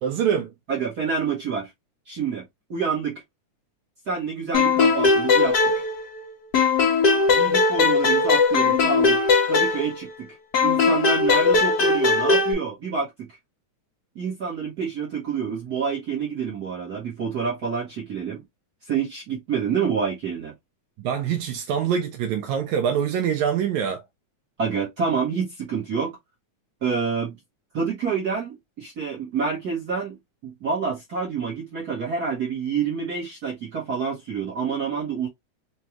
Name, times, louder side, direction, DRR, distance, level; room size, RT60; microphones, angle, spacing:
voice 1, 0.0-0.5 21.0-24.0, right 8 dB, 80° right, 1.8 m, -24 dB
voice 2, 0.7-1.7 2.1-3.2 4.1-5.6 7.3-10.3 10.6-13.3 14.1-18.4 18.9-20.5 24.6-26.1 26.8-27.4 27.7-30.2 30.4-35.3, right 6 dB, 55° right, 1.0 m, -28 dB
sound 1, 4.5-6.2 6.5-10.2 10.5-12.5, left 4 dB, 60° left, 1.1 m, -19 dB
5.2 x 2.4 x 2.8 m
omnidirectional pair, 3.5 m